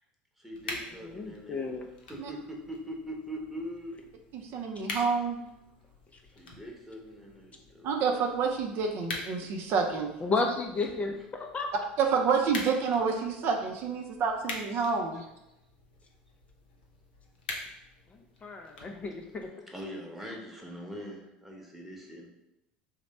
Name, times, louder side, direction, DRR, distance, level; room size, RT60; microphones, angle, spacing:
voice 1, 0.4-1.7 2.1-4.0 6.4-8.2 19.7-22.3, equal, 5° right, -1 dB, 0.9 m, -42 dB
sound 1, 0.5-19.5, left 2 dB, 80° left, 0.6 m, -45 dB
voice 2, 1.1-1.9 4.8-4.9 6.1-6.2 10.2-11.7 18.1-19.5, left 3 dB, 30° left, 3 dB, 0.4 m, -33 dB
voice 3, 4.3-5.4 7.8-10.1 12.0-15.2, right 5 dB, 55° right, 2 dB, 0.5 m, -28 dB
3.1 x 2.1 x 4.1 m, 0.87 s
hypercardioid pair, 75°, 5 cm